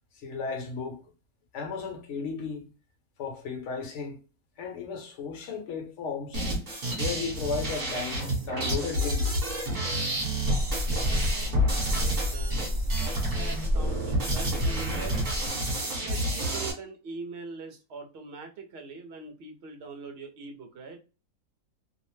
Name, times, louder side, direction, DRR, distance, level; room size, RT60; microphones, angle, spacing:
voice 1, 0.1-1.1 1.5-2.7 3.2-4.2 4.6-6.4 7.0-9.4, left 5 dB, 60° left, 1.0 m, -35 dB
sound 1, 6.3-16.7, right 1 dB, 40° right, 1.2 m, -29 dB
sound 2, 10.4-15.5, left 1 dB, 90° right, 0.4 m, -30 dB
voice 2, 11.9-15.2 15.8-21.0, right 4 dB, 55° right, 0.7 m, -43 dB
2.6 x 2.0 x 3.1 m
omnidirectional pair, 1.6 m